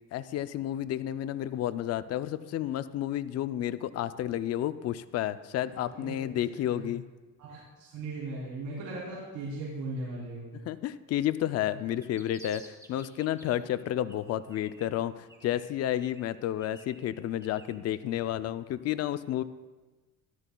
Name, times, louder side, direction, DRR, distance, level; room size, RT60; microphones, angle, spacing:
voice 1, 0.1-7.0 10.7-19.4, left 12 dB, 50° left, 14 dB, 0.5 m, -31 dB
voice 2, 6.5-6.9 7.4-10.5, right 2 dB, 65° right, -7 dB, 3.5 m, -38 dB
sound 1, 11.8-13.8 14.1-15.0 15.3-17.8, right 2 dB, 10° right, 1.6 m, -54 dB
15.0 x 12.5 x 2.3 m, 1.2 s
cardioid pair, 110°, 34 cm